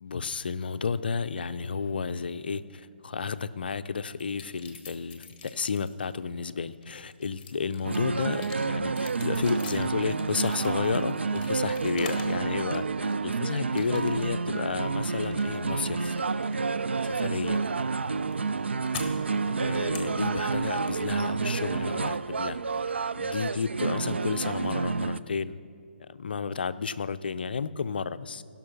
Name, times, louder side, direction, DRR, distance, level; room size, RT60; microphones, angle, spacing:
voice 1, 0.0-16.2 17.0-17.6 19.6-22.6 23.2-25.6 26.0-28.4, left 5 dB, 55° left, 13 dB, 0.5 m, -32 dB
sound 1, 4.2-6.2 6.7-12.4 12.7-13.4 13.8-14.4 14.6-22.6, left 4 dB, 25° left, 1.3 m, -46 dB
sound 2, 7.8-25.2, right 4 dB, 75° right, 0.4 m, -29 dB
17.0 x 5.8 x 5.9 m, 2.3 s
figure-of-eight pair, 145°, 6 cm